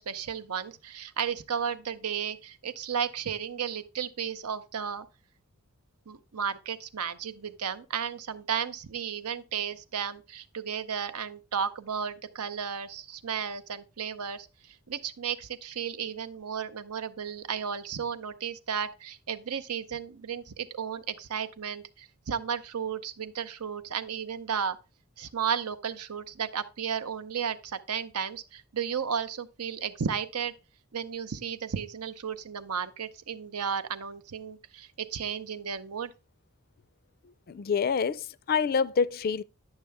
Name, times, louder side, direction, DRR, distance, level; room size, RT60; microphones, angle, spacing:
voice 1, 0.0-5.1 6.1-24.8 25.2-30.5 30.9-36.1, right 7 dB, 85° right, 0.7 m, -34 dB
voice 2, 37.5-39.4, left 6 dB, 40° left, 0.3 m, -27 dB
10.5 x 6.7 x 3.4 m
head